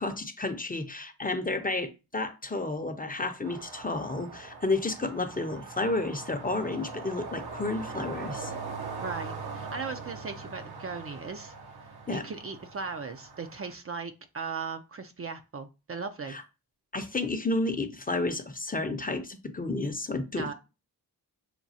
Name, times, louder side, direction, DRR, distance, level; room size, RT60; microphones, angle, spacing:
voice 1, 0.0-8.5 12.1-12.2 16.3-16.4 16.9-20.5, left 2 dB, 20° left, 0.7 m, -31 dB
sound 1, 3.4-13.7, right 4 dB, 75° right, 0.9 m, -41 dB
voice 2, 9.0-11.5 12.1-16.4 20.4-20.5, right 5 dB, 35° right, 0.5 m, -37 dB
5.9 x 2.3 x 2.7 m
cardioid pair, 50°, 39 cm